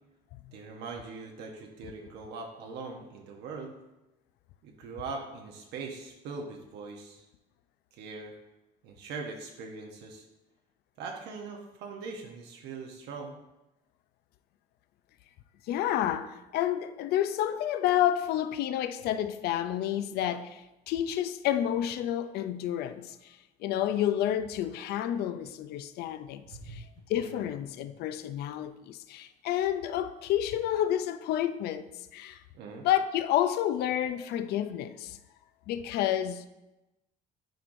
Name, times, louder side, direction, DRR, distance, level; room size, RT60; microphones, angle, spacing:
voice 1, 0.5-3.7 4.6-7.2 8.0-8.3 8.8-10.3 11.0-13.4 26.5-26.8 27.1-27.5 32.5-32.8, right 4 dB, 80° right, 0.9 m, -41 dB
voice 2, 15.7-32.4 32.8-35.2 35.7-36.5, left 11 dB, 70° left, 0.4 m, -30 dB
9.1 x 4.6 x 2.6 m
cardioid pair, 110°, 17 cm